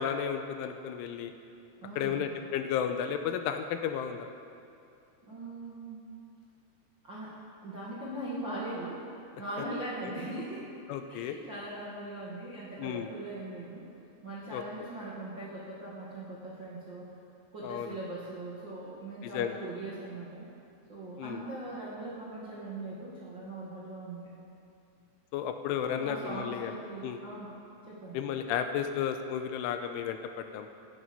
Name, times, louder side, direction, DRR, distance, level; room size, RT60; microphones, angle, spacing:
voice 1, 0.0-1.3 2.0-4.3 10.9-11.4 12.8-13.1 14.5-14.6 17.6-18.0 19.2-19.6 21.2-21.4 25.3-26.7 27.0-27.2 28.1-30.7, left 8 dB, 85° left, 7 dB, 3.0 m, -33 dB
voice 2, 1.8-2.4 5.3-6.0 7.0-7.3 7.6-9.0 9.4-10.6 11.1-13.8 14.2-17.1 17.5-20.5 20.9-24.3 25.8-27.5 27.9-28.2, right 1 dB, 55° right, -7 dB, 1.3 m, -40 dB
17.5 x 12.5 x 5.5 m, 2.6 s
omnidirectional pair, 5.8 m